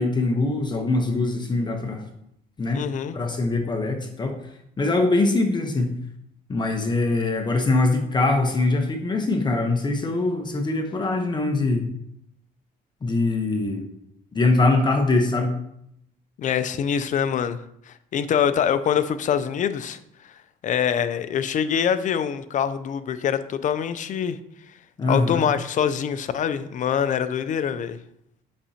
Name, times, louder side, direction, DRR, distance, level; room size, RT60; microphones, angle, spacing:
voice 1, 0.0-2.0 2.6-2.8 3.1-4.4 4.8-5.9 6.5-11.9 13.0-13.8 14.3-15.6 25.0-25.4, left 2 dB, 25° left, 4 dB, 1.0 m, -22 dB
voice 2, 2.7-3.2 16.4-17.6 17.9-20.4 20.6-24.4 25.1-28.0, left 8 dB, 50° left, 12 dB, 0.5 m, -24 dB
8.4 x 6.1 x 2.9 m, 0.75 s
cardioid pair, 110°, 17 cm